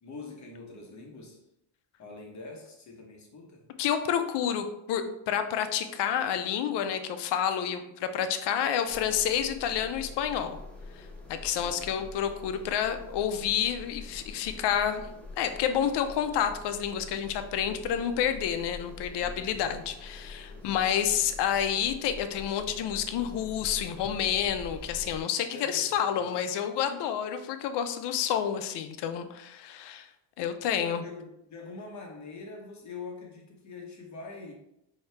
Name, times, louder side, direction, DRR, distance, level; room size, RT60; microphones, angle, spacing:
voice 1, 0.0-1.4 2.0-3.7 11.5-12.1 19.2-19.7 20.5-21.0 25.5-26.4 30.6-34.5, left 3 dB, 35° left, 0 dB, 1.1 m, -45 dB
voice 2, 3.8-10.6 11.3-15.1 15.4-30.1 30.4-31.0, left 9 dB, 55° left, 8 dB, 0.6 m, -29 dB
sound 1, 8.9-25.2, left 3 dB, ahead, 0.7 m, -45 dB
4.3 x 2.8 x 3.3 m, 0.83 s
cardioid pair, 115°, 49 cm